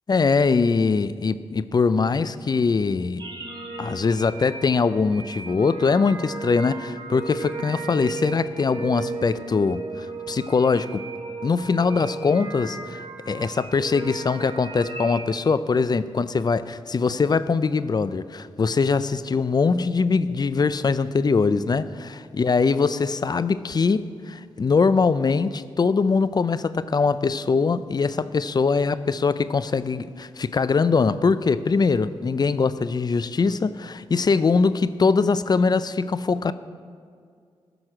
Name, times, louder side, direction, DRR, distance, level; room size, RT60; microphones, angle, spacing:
voice 1, 0.1-3.3 3.8-11.0 11.4-13.0 13.3-36.5, left 4 dB, 40° left, 15 dB, 0.4 m, -22 dB
sound 1, 3.2-15.3, right 3 dB, 45° right, 2.6 m, -36 dB
14.0 x 6.1 x 4.9 m, 2.2 s
cardioid pair, 55°, 11 cm